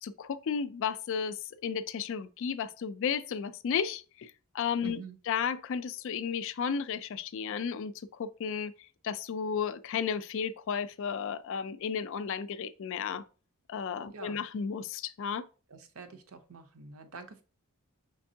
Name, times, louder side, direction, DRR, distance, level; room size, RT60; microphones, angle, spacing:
voice 1, 0.0-5.0 5.3-8.7 9.0-13.2 13.7-15.4, left 7 dB, 60° left, 0.3 m, -33 dB
voice 2, 4.8-5.2 14.1-14.4 15.7-17.4, right 5 dB, 70° right, 0.6 m, -46 dB
5.1 x 3.5 x 2.7 m
head